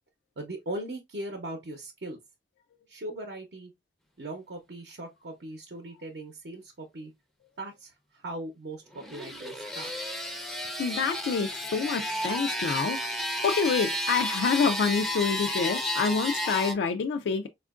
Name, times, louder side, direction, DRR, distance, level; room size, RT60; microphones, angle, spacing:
voice 1, 0.4-2.2 2.9-3.7 4.2-7.1 7.6-9.9, right 1 dB, 70° right, 0.7 m, -39 dB
sound 1, 8.9-16.7, equal, ahead, 0.4 m, -32 dB
voice 2, 10.8-13.2 13.4-17.5, left 5 dB, 80° left, 0.3 m, -27 dB
4.3 x 2.4 x 2.3 m
head